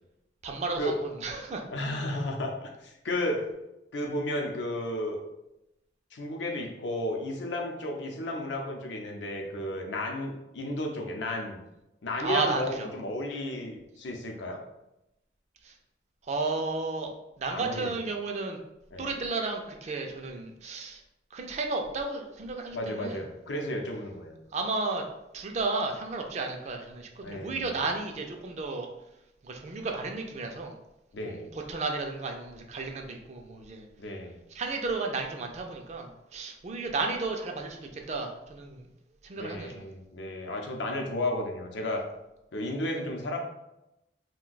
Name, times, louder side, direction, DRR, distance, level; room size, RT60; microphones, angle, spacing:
voice 1, 0.4-1.6 12.2-12.9 15.6-15.7 16.3-17.1 17.4-18.6 19.0-21.0 21.3-23.2 24.5-25.0 25.3-28.9 29.4-30.8 31.2-33.9 34.5-38.9 39.2-39.8, right 3 dB, 40° right, 3 dB, 0.4 m, -33 dB
voice 2, 1.7-3.5 3.9-5.2 6.1-11.6 12.0-14.6 17.5-17.9 18.9-19.1 22.7-24.4 27.2-27.8 31.1-31.5 34.0-34.4 39.3-42.0 42.5-43.4, left 1 dB, 85° left, 1 dB, 0.6 m, -33 dB
2.6 x 2.2 x 3.9 m, 0.91 s
head